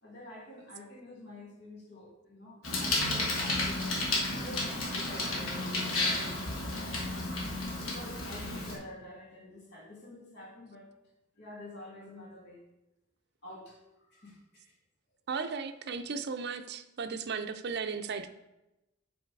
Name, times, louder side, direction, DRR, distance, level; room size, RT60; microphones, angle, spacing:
voice 1, 0.0-3.9 4.4-7.0 7.8-10.9 11.4-12.6 13.4-14.8, left 1 dB, 55° left, -2 dB, 2.0 m, -48 dB
Bicycle, 2.6-8.7, left 2 dB, 85° left, 1.7 m, -32 dB
voice 2, 15.3-18.3, right 5 dB, 55° right, 8 dB, 0.5 m, -35 dB
7.8 x 4.1 x 4.7 m, 0.95 s
head